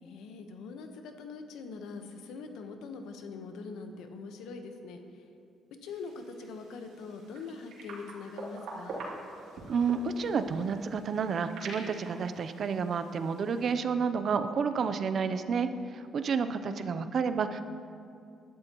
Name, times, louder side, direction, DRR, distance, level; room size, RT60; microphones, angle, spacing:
voice 1, 0.0-5.3 5.8-9.0 16.4-17.1, left 4 dB, 90° left, 5 dB, 1.1 m, -43 dB
sound 1, 5.9-13.8, right 2 dB, 85° right, 2.9 m, -46 dB
voice 2, 9.7-17.6, right 5 dB, 55° right, 10 dB, 0.7 m, -30 dB
19.5 x 11.5 x 3.1 m, 2.4 s
cardioid pair, 90°, 0 cm